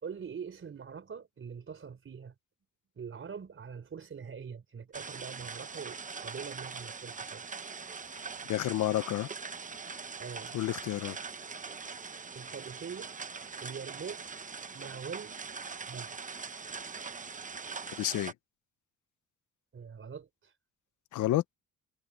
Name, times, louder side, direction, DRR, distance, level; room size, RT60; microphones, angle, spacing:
voice 1, 0.0-2.3 3.0-7.5 10.2-10.6 12.3-13.1 13.6-14.3 14.7-15.5 15.9-16.2 19.7-20.5, right 6 dB, 45° right, 4.1 m, -43 dB
sound 1, 4.9-18.3, right 5 dB, 25° right, 1.0 m, -42 dB
voice 2, 8.4-9.3 10.5-11.2 18.0-18.3 21.1-21.4, left 14 dB, 80° left, 0.9 m, -30 dB
cardioid pair, 90°, 30 cm